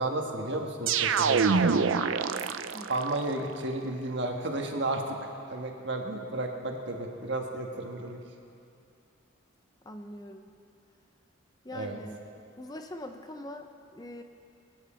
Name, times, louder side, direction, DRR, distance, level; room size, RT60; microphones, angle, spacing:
voice 1, 0.0-1.8 2.9-5.2 5.5-8.2 11.7-12.0, right 2 dB, 60° right, 2 dB, 1.5 m, -32 dB
sound 1, 0.9-3.1, right 5 dB, 80° right, 0.5 m, -25 dB
voice 2, 9.8-10.5 11.6-12.2 12.6-14.2, left 1 dB, 20° left, 5 dB, 0.6 m, -42 dB
23.5 x 9.7 x 4.4 m, 2.5 s
head